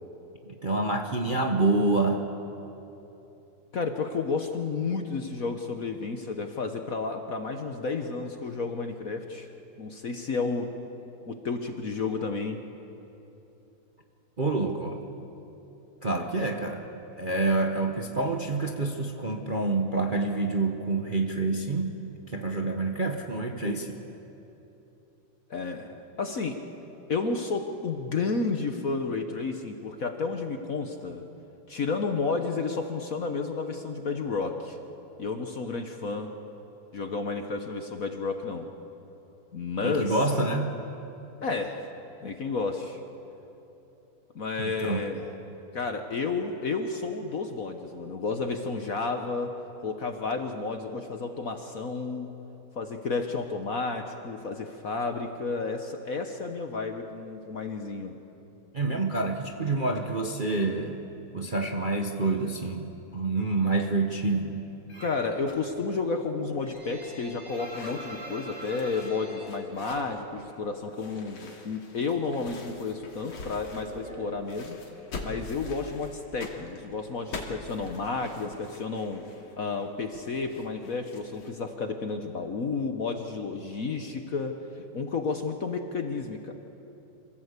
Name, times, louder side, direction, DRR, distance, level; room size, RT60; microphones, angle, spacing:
voice 1, 0.4-2.3 14.4-15.0 16.0-16.8 17.2-21.9 22.3-24.0 39.8-40.7 44.6-45.1 58.7-61.0 61.3-64.5, right 3 dB, 35° right, 3 dB, 0.9 m, -27 dB
voice 2, 3.7-9.5 9.8-10.7 11.3-12.6 25.5-26.6 27.1-31.2 31.7-34.8 35.2-36.3 36.9-38.7 39.5-40.2 41.4-41.9 42.2-43.0 44.3-45.3 45.7-49.5 49.8-52.3 52.8-58.2 65.0-74.8 75.2-79.2 79.6-84.6 84.9-86.5, left 4 dB, 50° left, 6 dB, 1.2 m, -31 dB
sound 1, 64.9-65.3 65.7-70.6 70.8-71.9 72.2-75.0, right 1 dB, 15° right, 7.0 m, -45 dB
sound 2, 65.5-65.7 65.9-67.4 67.6-68.0 68.5-70.1 70.9-74.2 74.5-81.5, left 3 dB, 80° left, 3.1 m, -44 dB
26.5 x 16.0 x 8.2 m, 3.0 s
omnidirectional pair, 2.4 m